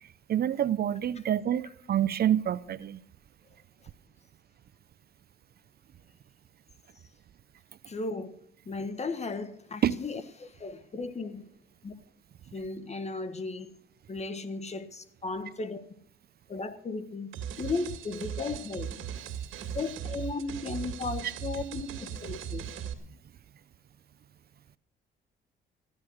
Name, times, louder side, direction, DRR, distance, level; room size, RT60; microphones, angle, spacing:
voice 1, 0.3-3.0 9.8-10.0, right 10 dB, 50° right, 0.6 m, -27 dB
voice 2, 7.9-8.4 8.6-11.4 11.8-11.9 12.5-13.7 14.1-15.8 16.5-17.3 17.6-18.9 19.7-22.6, left 3 dB, 35° left, 1.5 m, -35 dB
sound 1, 17.3-22.9, right 8 dB, 80° right, 2.1 m, -38 dB
14.5 x 11.0 x 6.4 m
cardioid pair, 90°, 20 cm